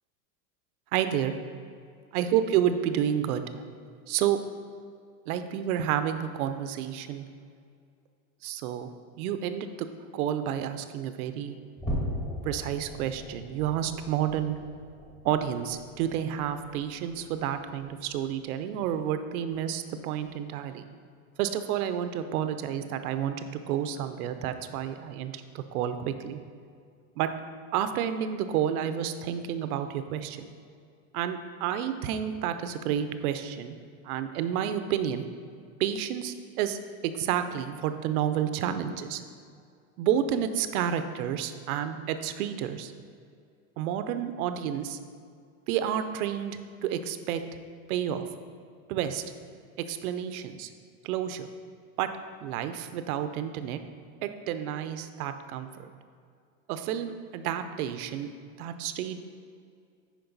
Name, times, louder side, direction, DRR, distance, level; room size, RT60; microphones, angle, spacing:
voice 1, 0.9-1.4 2.1-3.4 4.1-4.4 5.3-7.3 8.4-8.9 9.2-9.9 10.1-11.6 12.4-14.6 15.2-20.9 21.4-26.4 27.2-27.3 27.7-30.5 31.1-33.8 34.0-35.3 35.8-36.8 37.0-39.2 40.0-42.9 43.8-45.0 45.7-47.4 47.9-48.2 48.9-49.2 49.8-50.7 51.0-51.5 52.0-52.1 52.4-53.8 54.2-55.9 56.7-58.3 58.6-59.3, right 10 dB, 80° right, 10 dB, 0.7 m, -30 dB
sound 1, 11.8-18.4 18.8-19.1 19.5-19.6 20.2-20.3, equal, 15° left, 1.5 m, -39 dB
10.5 x 4.7 x 4.0 m, 2.3 s
supercardioid pair, 155°, 43 cm